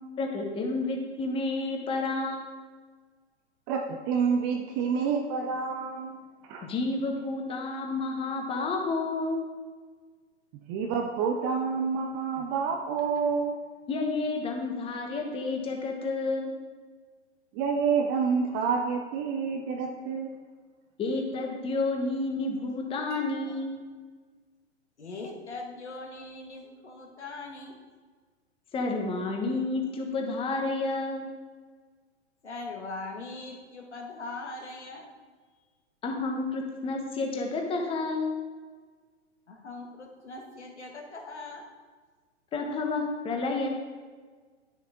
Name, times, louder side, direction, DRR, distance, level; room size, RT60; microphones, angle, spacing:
voice 1, 0.2-2.7 6.6-9.4 13.9-16.5 21.0-23.8 28.7-31.3 36.0-38.4 42.5-43.7, left 3 dB, 15° left, 2 dB, 1.1 m, -30 dB
voice 2, 3.7-6.2 6.4-6.7 10.7-13.6 17.5-20.3, right 5 dB, 20° right, 3 dB, 0.4 m, -28 dB
voice 3, 23.1-23.6 25.0-27.7 32.4-35.1 39.5-41.6, left 3 dB, 75° left, 1 dB, 1.7 m, -41 dB
10.5 x 6.7 x 3.6 m, 1.5 s
figure-of-eight pair, 110°, 35 cm